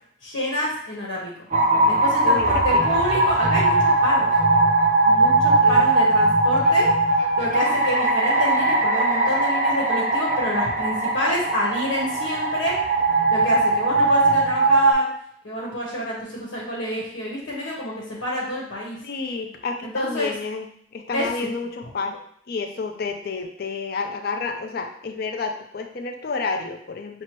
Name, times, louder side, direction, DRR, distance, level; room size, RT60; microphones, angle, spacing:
voice 1, 0.2-1.5 1.9-4.3 5.1-6.9 7.4-12.8 13.3-15.1 15.4-19.0 19.8-20.3 21.1-21.5, left 1 dB, 90° left, -4 dB, 0.9 m, -28 dB
sound 1, 1.5-14.9, right 2 dB, 40° right, 0.5 m, -20 dB
voice 2, 2.2-3.0 5.6-6.0 19.0-20.7 20.9-22.2 22.5-27.2, left 4 dB, 50° left, 5 dB, 0.4 m, -30 dB
5.8 x 2.0 x 2.9 m, 0.67 s
head